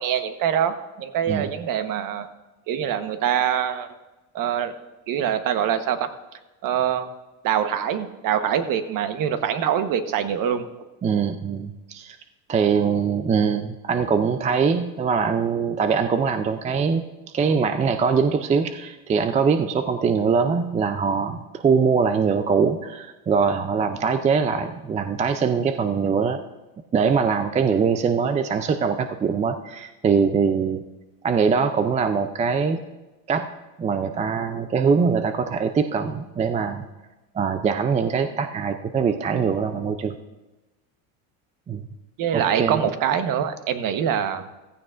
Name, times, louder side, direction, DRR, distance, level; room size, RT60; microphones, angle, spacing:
voice 1, 0.0-2.3 2.7-3.9 4.3-4.7 5.1-6.1 6.6-7.1 7.4-10.6 42.2-44.4, right 9 dB, 50° right, 9 dB, 1.2 m, -24 dB
voice 2, 11.0-12.2 12.5-17.0 17.3-26.4 26.9-30.8 31.2-32.8 33.3-33.5 33.8-36.8 37.3-40.1 41.7-41.9 42.3-42.8, right 5 dB, 15° right, 8 dB, 0.4 m, -22 dB
15.5 x 14.0 x 2.5 m, 1.1 s
supercardioid pair, 115°, 43 cm